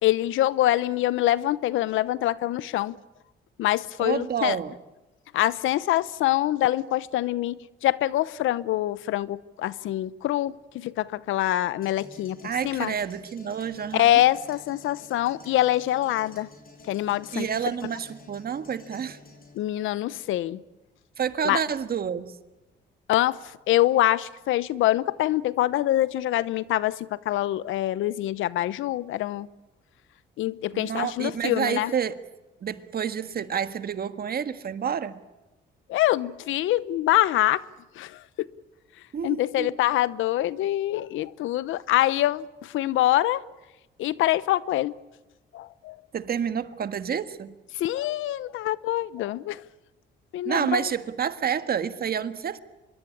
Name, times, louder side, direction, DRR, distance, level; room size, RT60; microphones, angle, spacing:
voice 1, 0.0-3.0 3.6-4.6 5.3-12.9 13.9-16.5 16.9-17.5 19.5-20.6 21.4-21.6 23.1-29.5 30.4-31.9 35.9-37.6 38.0-38.5 39.2-43.4 44.0-45.0 45.5-46.0 47.7-49.6 50.3-50.9, left 14 dB, 85° left, 0.8 m, -25 dB
voice 2, 4.0-4.7 12.4-14.2 17.3-19.2 21.2-22.3 30.7-32.2 32.6-35.2 39.1-39.8 46.1-47.5 50.4-52.6, right 7 dB, 50° right, 1.6 m, -29 dB
sound 1, 11.8-19.6, left 3 dB, 45° left, 5.7 m, -50 dB
25.5 x 22.0 x 8.6 m
cardioid pair, 90°, 20 cm